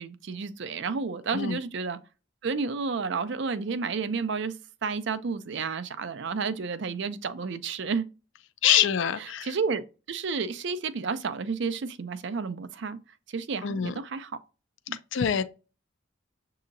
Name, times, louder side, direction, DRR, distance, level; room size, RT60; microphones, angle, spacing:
voice 1, 0.0-2.0 2.4-4.5 4.8-8.1 8.6-8.9 9.4-9.8 10.1-13.0 13.3-14.3 14.9-15.0, right 5 dB, 55° right, 0.4 m, -31 dB
voice 2, 8.6-9.5 13.6-13.9 15.1-15.4, left 10 dB, 60° left, 0.4 m, -25 dB
7.2 x 2.8 x 2.6 m
head